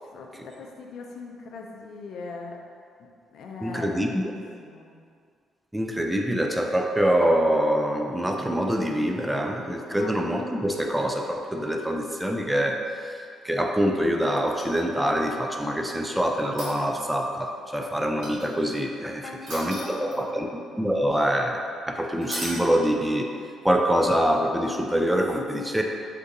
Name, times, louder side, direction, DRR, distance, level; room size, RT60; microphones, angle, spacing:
voice 1, 0.0-2.6 3.0-4.3 4.6-4.9 9.9-10.1 19.2-20.5, left 3 dB, 70° left, 1 dB, 0.4 m, -40 dB
voice 2, 3.6-4.1 5.7-13.2 13.4-20.5 20.8-23.3 23.6-25.8, equal, 5° right, 2 dB, 0.3 m, -25 dB
sound 1, 14.5-15.2 16.4-17.2 18.2-18.8 19.5-20.4 22.2-22.7 24.9-25.0, right 1 dB, 75° right, 1.1 m, -36 dB
2.6 x 2.4 x 3.8 m, 2.2 s
supercardioid pair, 75°, 0 cm